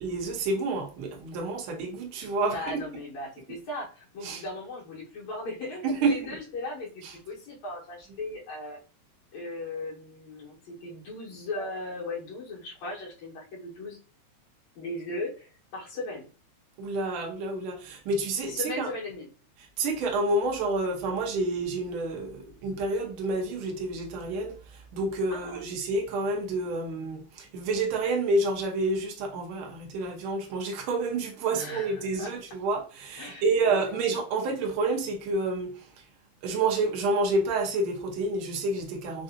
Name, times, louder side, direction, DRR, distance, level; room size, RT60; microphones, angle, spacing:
voice 1, 0.0-2.8 4.2-4.4 5.8-6.1 16.8-18.9 19.8-35.9 36.4-39.2, right 2 dB, 75° right, 1.2 m, -29 dB
voice 2, 2.5-8.8 9.3-14.0 14.8-16.3 18.4-19.3 25.3-25.6 31.5-32.3 33.2-34.0, left 2 dB, 70° left, 2.4 m, -38 dB
5.3 x 2.6 x 2.7 m
omnidirectional pair, 3.5 m